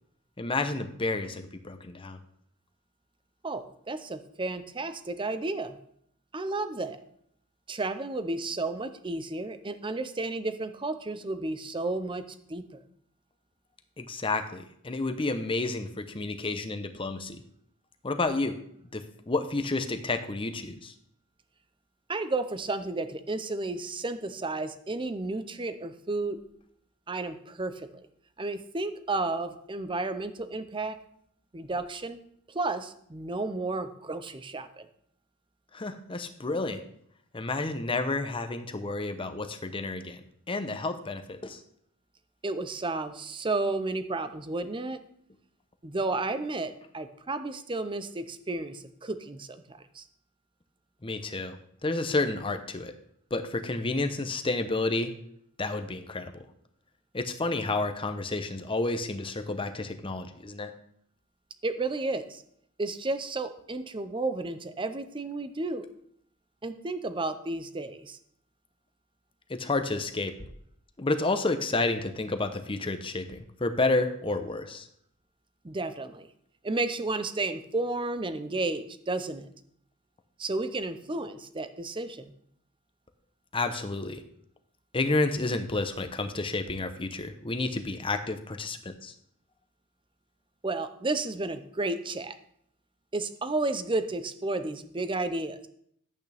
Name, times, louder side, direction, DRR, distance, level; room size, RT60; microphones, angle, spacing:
voice 1, 0.4-2.2 14.0-17.4 18.0-18.6 18.9-20.9 35.7-36.8 37.3-41.6 51.0-51.6 51.8-52.9 53.3-55.1 55.6-56.4 57.1-60.7 69.5-70.3 71.0-74.9 83.5-84.2 84.9-89.1, left 2 dB, 25° left, 7 dB, 0.8 m, -30 dB
voice 2, 3.4-5.8 6.3-7.0 7.7-12.8 22.1-26.4 27.1-28.1 28.4-31.0 31.5-32.2 32.5-34.9 42.4-45.0 45.8-50.1 61.6-62.4 62.8-65.9 66.6-68.2 75.6-76.3 76.6-79.5 80.4-82.3 90.6-92.4 93.1-95.7, right 2 dB, 25° right, 11 dB, 0.6 m, -32 dB
11.0 x 8.6 x 3.4 m, 0.67 s
head